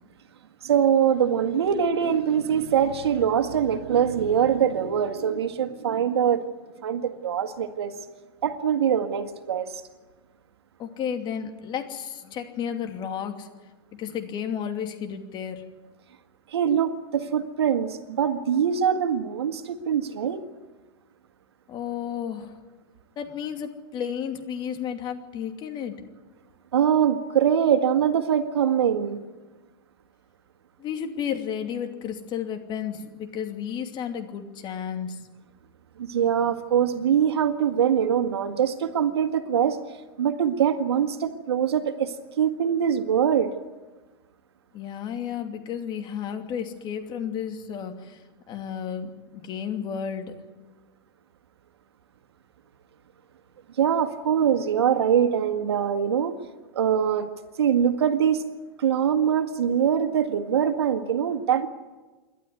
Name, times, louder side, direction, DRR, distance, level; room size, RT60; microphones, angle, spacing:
voice 1, 0.6-6.4 6.8-7.9 8.4-9.8 16.5-20.4 26.7-29.2 36.0-39.8 40.2-43.6 53.8-56.3 56.7-57.3 57.6-58.4 58.8-61.7, right 8 dB, 80° right, 8 dB, 1.8 m, -23 dB
voice 2, 10.8-13.5 13.9-15.6 21.7-22.6 23.2-26.0 30.8-35.2 44.7-48.2 48.5-50.3, left 8 dB, 35° left, 5 dB, 2.7 m, -32 dB
28.0 x 12.0 x 9.6 m, 1.3 s
hypercardioid pair, 115°, 13 cm